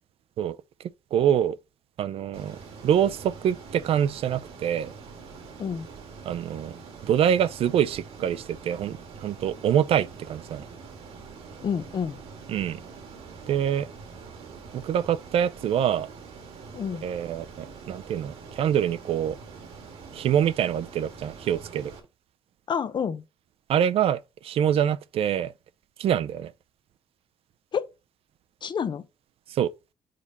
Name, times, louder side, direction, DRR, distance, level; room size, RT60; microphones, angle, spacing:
voice 1, 1.1-1.6 2.0-2.6 2.8-4.9 6.3-6.7 7.1-10.6 12.5-12.8 13.5-13.9 14.7-16.1 17.0-19.4 20.1-21.9 23.7-25.5 26.0-26.5 29.5-29.7, right 9 dB, 70° right, 0.5 m, -25 dB
Ocean, 2.3-22.0, right 5 dB, 90° right, 1.6 m, -44 dB
voice 2, 11.6-12.2 16.7-17.0 22.7-23.2 27.7-27.9 28.6-29.0, left 7 dB, 50° left, 0.7 m, -28 dB
5.1 x 4.1 x 5.3 m
cardioid pair, 75°, 10 cm